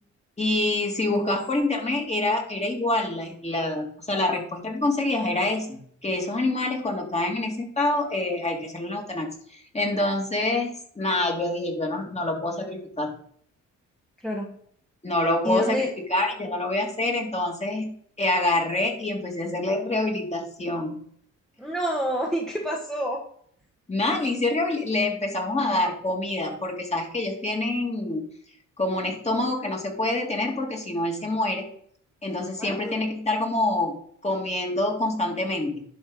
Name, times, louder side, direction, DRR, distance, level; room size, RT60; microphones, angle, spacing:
voice 1, 0.4-13.1 15.0-21.0 23.9-28.3 28.8-31.7 32.2-34.0 34.2-35.8, left 2 dB, 20° left, 1 dB, 2.7 m, -26 dB
voice 2, 14.2-14.6 15.4-15.9 21.6-23.2 32.6-32.9, equal, ahead, -1 dB, 1.6 m, -28 dB
11.0 x 5.7 x 4.1 m, 0.63 s
cardioid pair, 90°, 30 cm